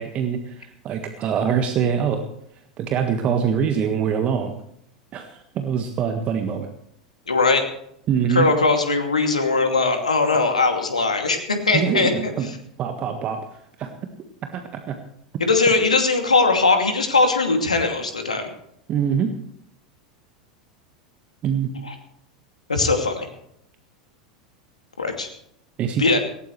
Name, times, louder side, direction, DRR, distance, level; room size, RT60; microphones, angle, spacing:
voice 1, 0.0-2.2 2.8-4.5 5.1-6.7 8.1-8.5 11.7-12.5 12.8-13.4 13.8-13.9 14.5-15.0 18.9-19.4 21.4-21.7 25.8-26.1, right 7 dB, 35° right, 6 dB, 1.6 m, -24 dB
voice 2, 7.3-7.6 8.3-12.6 15.4-18.5 21.8-21.9 22.7-23.3 25.0-25.3 26.0-26.2, left 3 dB, 80° left, 5 dB, 2.5 m, -20 dB
18.5 x 17.0 x 3.2 m, 0.73 s
figure-of-eight pair, 85°, 4 cm